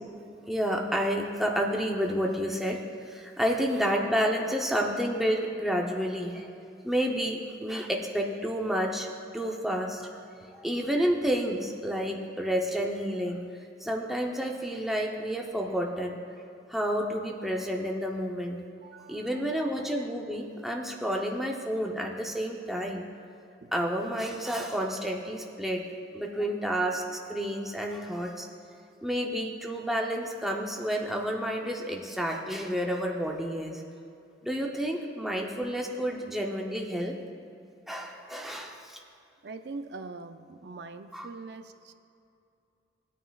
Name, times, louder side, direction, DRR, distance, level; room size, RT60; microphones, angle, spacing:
voice 1, 0.5-6.5 6.8-9.1 9.3-10.2 10.5-16.2 16.7-18.6 19.1-23.0 23.7-25.9 26.1-28.5 29.0-33.8 34.4-37.2 37.9-39.0 41.1-41.3, equal, ahead, 0 dB, 0.6 m, -30 dB
voice 2, 18.8-19.4 23.6-23.7 39.4-41.9, right 3 dB, 65° right, 9 dB, 0.5 m, -42 dB
16.5 x 9.1 x 2.4 m, 2.6 s
head